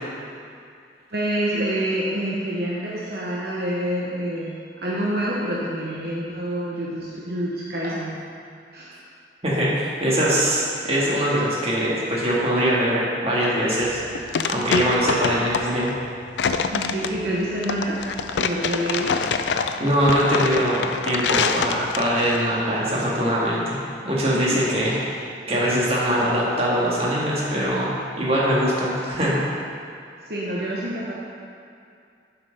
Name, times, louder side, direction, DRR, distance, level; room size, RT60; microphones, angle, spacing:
voice 1, 1.1-8.2 8.7-9.0 16.6-19.2 24.2-24.7 30.2-31.1, right 1 dB, 60° right, -5 dB, 0.9 m, -27 dB
voice 2, 9.4-15.9 19.8-23.8 24.0-29.4, equal, 35° right, -6 dB, 1.7 m, -22 dB
sound 1, 13.8-22.4, left 5 dB, 85° left, 0.4 m, -26 dB
7.6 x 5.8 x 5.3 m, 2.4 s
head